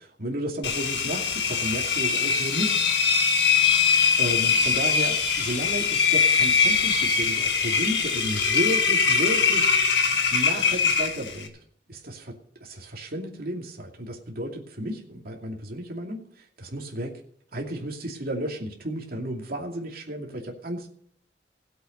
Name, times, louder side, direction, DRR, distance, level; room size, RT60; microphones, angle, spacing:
voice 1, 0.2-2.8 3.6-3.7 4.2-9.7 10.3-11.5 11.9-12.3 12.6-17.2 17.5-20.9, right 1 dB, 60° right, 0 dB, 2.6 m, -33 dB
Engine, 0.6-11.5, left 5 dB, 75° left, 1.8 m, -22 dB
17.0 x 8.0 x 5.4 m, 0.65 s
head